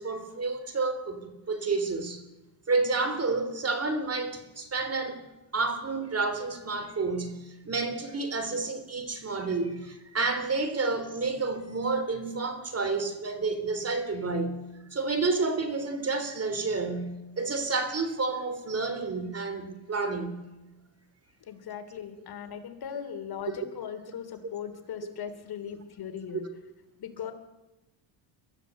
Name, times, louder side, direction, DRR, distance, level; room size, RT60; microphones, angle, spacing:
voice 1, 0.0-2.2 2.7-5.2 5.5-14.6 14.9-20.4 23.5-23.6 25.0-25.2 25.7-25.8 26.3-26.4, right 3 dB, 30° right, 3.4 m, -30 dB
voice 2, 21.5-26.4 27.0-27.3, left 8 dB, 50° left, 3.2 m, -38 dB
23.5 x 14.5 x 8.2 m
cardioid pair, 105°, 48 cm